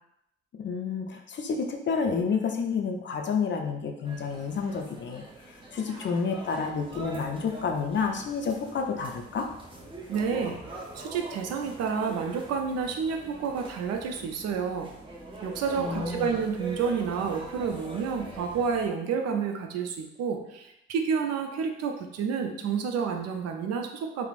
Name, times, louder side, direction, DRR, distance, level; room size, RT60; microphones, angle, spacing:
voice 1, 0.6-5.2 5.7-9.5 15.8-16.4, left 5 dB, 40° left, 3 dB, 0.4 m, -29 dB
sound 1, 4.0-18.9, right 2 dB, 15° right, 0.6 m, -43 dB
voice 2, 10.1-10.6 10.9-14.9 15.4-24.2, right 6 dB, 55° right, 4 dB, 0.4 m, -30 dB
2.9 x 2.0 x 2.4 m, 0.81 s
hypercardioid pair, 50°, 30 cm